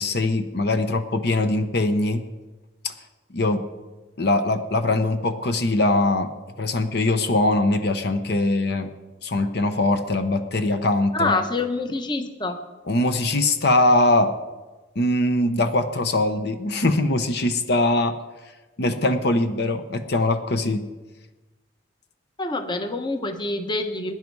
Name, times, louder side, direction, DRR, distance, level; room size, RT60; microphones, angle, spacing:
voice 1, 0.0-2.2 2.8-2.9 3.3-3.6 4.2-6.3 6.6-8.9 9.2-11.3 12.9-14.3 15.0-18.1 18.8-20.8, left 2 dB, 55° left, 8 dB, 0.8 m, -22 dB
voice 2, 11.1-12.6 22.4-24.1, left 2 dB, 25° left, 7 dB, 0.9 m, -26 dB
21.5 x 10.5 x 4.7 m, 1.2 s
head